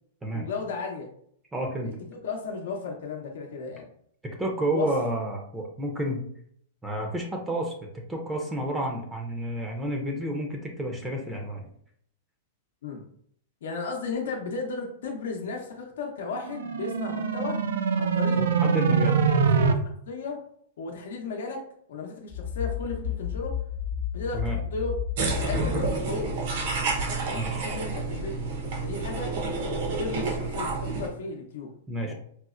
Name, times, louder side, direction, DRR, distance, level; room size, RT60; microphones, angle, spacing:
voice 1, 0.3-1.1 1.8-1.9 2.2-3.9 4.7-4.9 12.8-13.0 13.6-17.6 17.9-18.4 18.8-18.9 19.3-19.5 20.1-20.4 20.8-21.6 21.9-23.6 24.1-24.4 24.7-24.9 25.4-26.4 26.8-28.5 28.8-29.3 29.6-31.7, left 4 dB, 80° left, 0 dB, 0.6 m, -35 dB
voice 2, 1.5-2.0 4.2-6.2 6.8-11.7 18.4-19.1 24.3-24.6 27.3-27.7 31.9-32.1, right 1 dB, 10° right, 1 dB, 0.5 m, -30 dB
sound 1, 16.4-19.7, right 5 dB, 85° right, 0.3 m, -24 dB
sound 2, 22.3-25.9, left 9 dB, 45° left, 0.8 m, -32 dB
sound 3, 25.2-31.1, right 3 dB, 65° right, 0.7 m, -29 dB
4.1 x 2.0 x 2.4 m, 0.66 s
hypercardioid pair, 140°, 0 cm